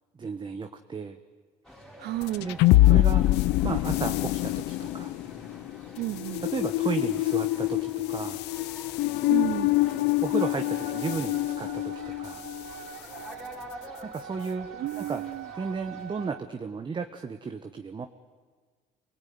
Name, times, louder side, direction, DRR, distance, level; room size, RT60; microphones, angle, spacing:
voice 1, 0.1-1.2 2.4-3.3 3.6-5.1 6.4-8.4 10.2-12.4 14.0-14.7 15.0-15.2 15.5-18.1, right 5 dB, 30° right, 6 dB, 1.2 m, -34 dB
sound 1, 1.6-16.3, equal, 5° left, 4.5 m, -49 dB
voice 2, 2.0-2.5 6.0-6.4 9.3-9.7 14.7-15.4, right 15 dB, 70° right, 15 dB, 0.8 m, -32 dB
sound 2, 2.2-12.7, left 17 dB, 85° left, 0.7 m, -25 dB
Wind instrument woodwind instrument, 10.4-16.5, right 9 dB, 90° right, 1.5 m, -43 dB
25.5 x 19.5 x 9.5 m, 1.5 s
cardioid pair, 110°, 17 cm